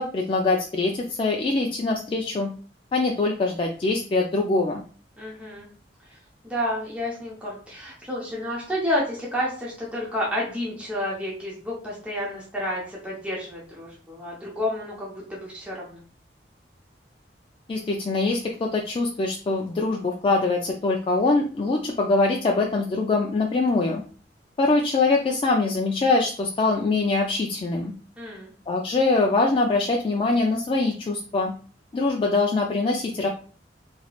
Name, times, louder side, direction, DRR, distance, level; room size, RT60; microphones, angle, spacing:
voice 1, 0.0-2.5 2.9-4.8 17.7-24.0 24.6-27.9 28.7-31.5 31.9-33.3, left 3 dB, 30° left, 0 dB, 0.3 m, -23 dB
voice 2, 5.2-5.7 6.0-6.2 6.4-16.0 28.2-28.5, left 1 dB, 5° right, -5 dB, 0.8 m, -30 dB
3.0 x 2.9 x 2.4 m, 0.40 s
head